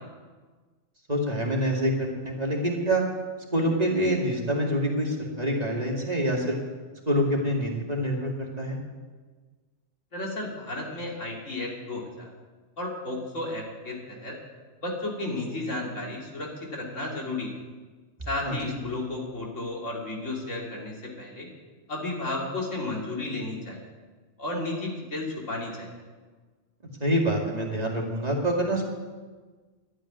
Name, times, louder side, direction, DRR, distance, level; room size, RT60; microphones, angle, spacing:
voice 1, 1.1-3.0 3.5-6.6 7.1-8.8 18.5-18.7 27.0-28.9, equal, 30° right, -1 dB, 2.3 m, -26 dB
voice 2, 10.1-12.3 12.8-14.3 14.8-17.5 18.3-21.5 21.9-23.8 24.4-25.9, left 2 dB, 70° left, -2 dB, 3.2 m, -33 dB
12.0 x 8.9 x 9.7 m, 1.4 s
omnidirectional pair, 1.3 m